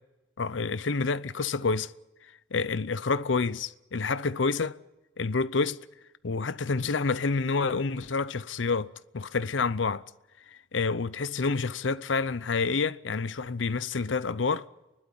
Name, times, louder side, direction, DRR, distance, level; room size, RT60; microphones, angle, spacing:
voice 1, 0.4-1.9 2.5-4.8 5.2-5.8 6.2-10.0 10.7-14.7, left 4 dB, 75° left, 0.7 m, -28 dB
29.5 x 12.0 x 9.9 m
head